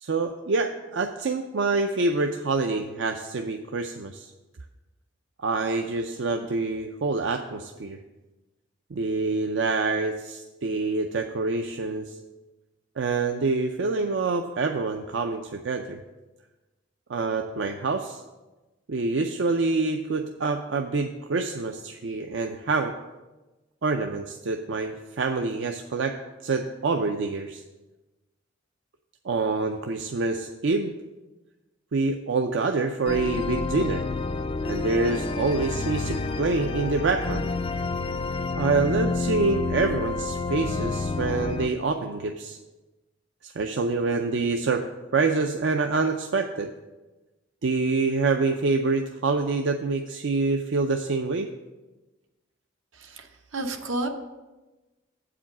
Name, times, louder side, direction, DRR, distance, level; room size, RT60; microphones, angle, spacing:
voice 1, 0.0-4.3 5.4-8.0 8.9-12.1 13.0-16.0 17.1-18.2 18.9-22.9 23.8-26.2 26.4-27.6 29.2-31.0 31.9-34.0 34.7-37.5 38.5-42.6 43.4-44.8 45.1-46.7 47.6-51.5, right 3 dB, 65° right, 5 dB, 0.5 m, -26 dB
sound 1, 33.0-41.7, left 3 dB, 25° left, 0.3 m, -29 dB
voice 2, 53.5-54.1, right 2 dB, 80° right, 5 dB, 0.9 m, -30 dB
7.9 x 5.0 x 7.2 m, 1.1 s
head